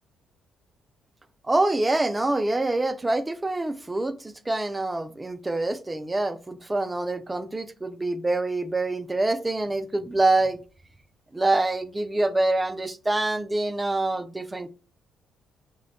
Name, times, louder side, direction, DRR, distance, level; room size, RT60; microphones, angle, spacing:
voice 1, 1.4-10.6 11.3-14.7, right 2 dB, 15° right, 0.3 m, -25 dB
3.0 x 2.1 x 3.9 m
cardioid pair, 90°, 0 cm